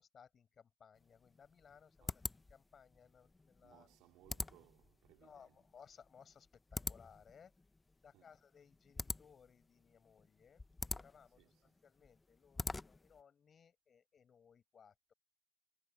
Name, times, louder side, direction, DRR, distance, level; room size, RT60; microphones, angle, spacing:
voice 1, 0.0-2.2 2.5-3.9 5.2-7.5 8.0-15.1, left 7 dB, 45° left, 6.7 m, -63 dB
sound 1, 1.0-13.2, left 3 dB, 20° left, 0.7 m, -46 dB
voice 2, 3.6-5.6 8.1-8.4 11.4-11.7, right 16 dB, 80° right, 2.9 m, -67 dB
supercardioid pair, 80°, 0 cm